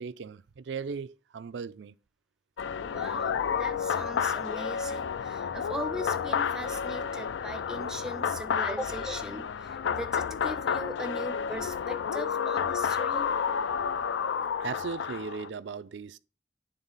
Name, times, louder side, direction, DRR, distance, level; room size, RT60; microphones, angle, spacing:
voice 1, 0.0-2.0 8.6-8.8 14.6-16.2, right 5 dB, 70° right, 0.4 m, -37 dB
sound 1, 2.6-15.5, left 7 dB, 75° left, 0.4 m, -31 dB
voice 2, 2.8-13.3, right 1 dB, 5° right, 0.5 m, -39 dB
8.9 x 3.7 x 4.0 m
head